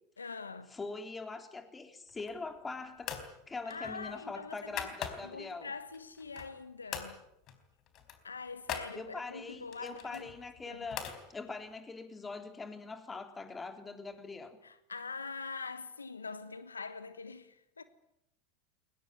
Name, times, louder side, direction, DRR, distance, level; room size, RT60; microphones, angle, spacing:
voice 1, 0.2-0.7 3.7-4.9 5.2-7.2 8.2-10.3 10.7-10.9 14.6-17.8, left 4 dB, 90° left, 1.2 m, -44 dB
voice 2, 0.7-3.1 3.5-5.7 8.9-14.6, left 3 dB, 15° left, 3.5 m, -43 dB
sound 1, 2.1-2.6 3.0-3.3 3.7-5.5 5.9-6.6 6.9-7.1 7.5-7.6 7.9-8.9 9.7-11.2, left 9 dB, 45° left, 4.1 m, -42 dB
22.0 x 20.0 x 9.3 m
hypercardioid pair, 85°, 0 cm